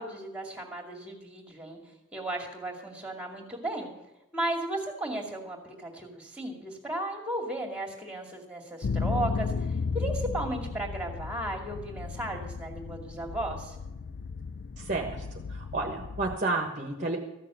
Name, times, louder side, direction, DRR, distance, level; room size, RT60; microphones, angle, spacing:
voice 1, 0.0-1.8 2.1-3.9 4.3-13.8, right 1 dB, 5° right, 1 dB, 2.3 m, -35 dB
sound 1, 8.8-16.4, left 4 dB, 50° left, 0.4 m, -34 dB
voice 2, 14.8-15.2 15.5-17.2, right 3 dB, 35° right, 3 dB, 1.2 m, -31 dB
14.5 x 6.7 x 9.0 m, 0.98 s
head